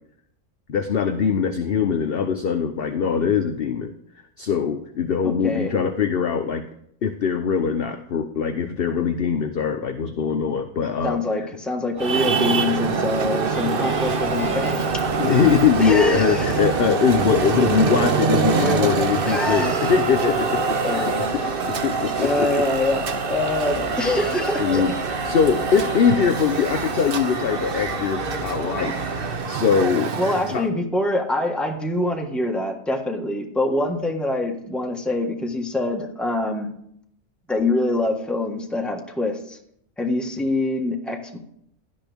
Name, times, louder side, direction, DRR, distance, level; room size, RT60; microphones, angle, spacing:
voice 1, 0.7-3.9 4.4-6.6 7.0-11.2 15.2-21.3 21.8-22.5 24.6-24.9 25.2-29.2 29.5-30.1 30.5-30.7, left 6 dB, 50° left, 7 dB, 0.9 m, -22 dB
voice 2, 5.2-5.7 11.0-15.0 15.8-16.6 17.7-17.9 18.6-19.9 20.8-21.3 22.2-24.8 30.2-36.7 37.5-39.6 40.0-41.4, left 2 dB, ahead, 1 dB, 1.5 m, -25 dB
sound 1, 11.9-29.4, equal, 25° right, 3.1 m, -32 dB
Traffic noise roadway noise, 12.0-30.6, right 5 dB, 50° right, 1.0 m, -25 dB
17.0 x 11.5 x 3.5 m, 0.73 s
omnidirectional pair, 1.3 m